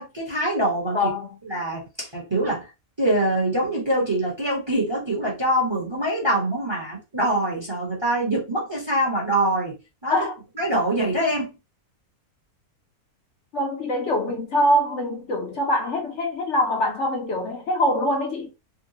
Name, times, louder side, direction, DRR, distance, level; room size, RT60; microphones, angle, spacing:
voice 1, 0.0-1.0 1.5-2.7 3.0-9.7 10.0-10.1 10.6-11.5, right 1 dB, 20° right, 0.9 m, -24 dB
voice 2, 0.9-1.4 10.1-10.4 13.5-18.5, left 1 dB, 55° left, 1.0 m, -24 dB
3.7 x 2.2 x 2.7 m
omnidirectional pair, 1.6 m